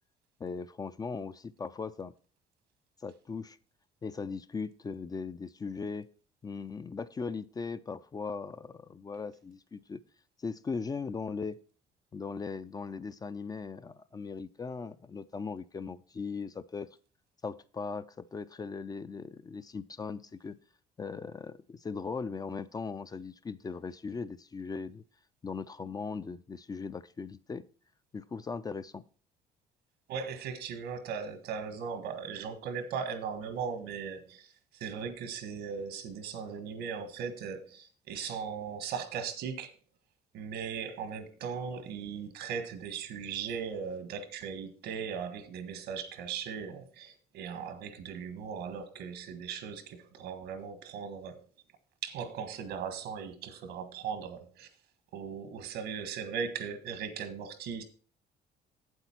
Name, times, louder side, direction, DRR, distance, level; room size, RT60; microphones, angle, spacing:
voice 1, 0.4-2.1 3.0-3.6 4.0-6.1 6.4-10.0 10.4-11.6 12.1-16.9 17.4-20.6 21.0-25.0 25.4-27.6 28.1-29.0, left 5 dB, 20° left, 0.4 m, -39 dB
voice 2, 30.1-39.7 40.3-51.4 52.0-54.7 55.1-57.8, right 6 dB, 80° right, 1.5 m, -38 dB
8.2 x 8.0 x 4.4 m
cardioid pair, 110°, 17 cm